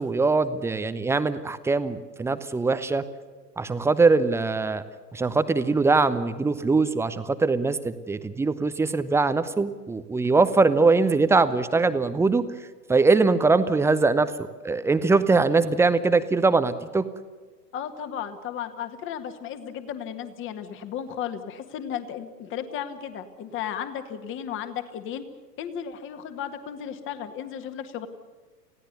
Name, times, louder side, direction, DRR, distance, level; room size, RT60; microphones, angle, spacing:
voice 1, 0.0-3.0 3.6-4.8 5.1-12.4 12.9-14.3 14.6-17.0, right 3 dB, 5° right, 12 dB, 0.7 m, -22 dB
voice 2, 17.7-25.2 25.6-28.1, left 9 dB, 25° left, 9 dB, 1.9 m, -34 dB
29.5 x 16.5 x 6.8 m, 1.4 s
figure-of-eight pair, 105°, 49 cm